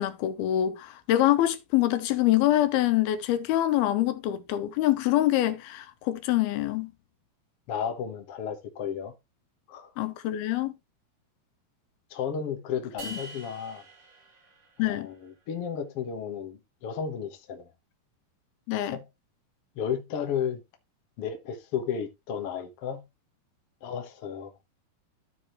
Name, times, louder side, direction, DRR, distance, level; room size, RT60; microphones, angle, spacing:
voice 1, 0.0-6.9 10.0-10.7 13.1-13.2 14.8-15.1 18.7-19.0, left 14 dB, 90° left, 2.8 m, -25 dB
voice 2, 7.7-9.1 9.7-9.9 12.1-13.8 14.8-17.7 18.9-19.0 19.7-20.6 21.2-23.0 23.8-24.5, left 7 dB, 60° left, 1.5 m, -33 dB
sound 1, 13.0-15.3, right 3 dB, 60° right, 3.9 m, -45 dB
14.5 x 5.0 x 3.1 m
omnidirectional pair, 4.4 m